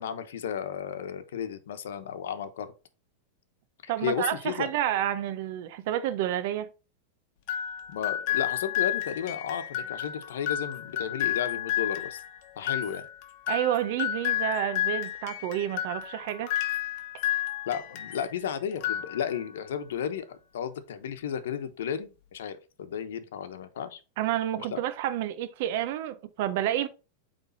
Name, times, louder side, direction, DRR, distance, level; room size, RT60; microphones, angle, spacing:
voice 1, 0.0-2.7 3.8-4.7 7.9-12.2 12.6-13.1 17.7-24.0 24.6-24.8, left 8 dB, 90° left, 0.9 m, -33 dB
voice 2, 3.9-6.7 13.5-16.5 24.2-26.9, right 12 dB, 55° right, 0.7 m, -29 dB
sound 1, 7.5-18.3 18.7-19.6, left 12 dB, 50° left, 1.0 m, -31 dB
8.3 x 3.3 x 4.0 m
supercardioid pair, 155°, 0 cm